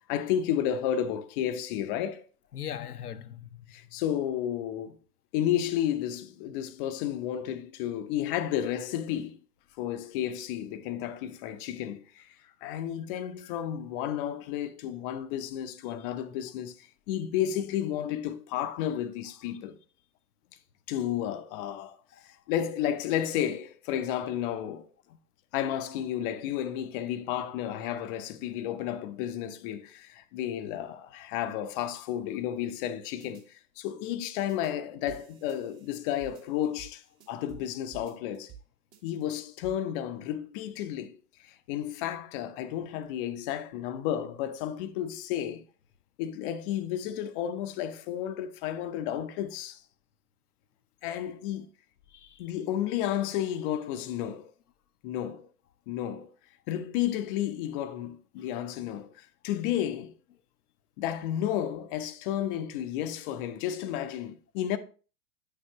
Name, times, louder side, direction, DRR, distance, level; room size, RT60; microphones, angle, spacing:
voice 1, 0.1-2.2 3.7-5.0 5.3-9.4 9.8-12.3 12.6-19.8 20.9-22.0 22.2-24.9 25.5-38.5 39.0-45.6 46.2-49.8 51.0-51.7 52.4-54.5 55.0-55.5 55.9-56.3 56.7-60.1 61.0-64.8, left 10 dB, 35° left, 0.7 m, -32 dB
voice 2, 2.5-4.0 12.4-12.8 13.4-13.7 15.9-16.1 19.5-19.6 22.1-22.4 52.1-52.5 58.4-58.5, left 10 dB, 80° left, 0.7 m, -43 dB
sound 1, 33.2-33.4 34.5-34.7 35.1-37.7 37.9-38.6 38.9-39.7, right 9 dB, 35° right, 1.6 m, -51 dB
9.1 x 6.7 x 2.9 m
figure-of-eight pair, 100°, 45 cm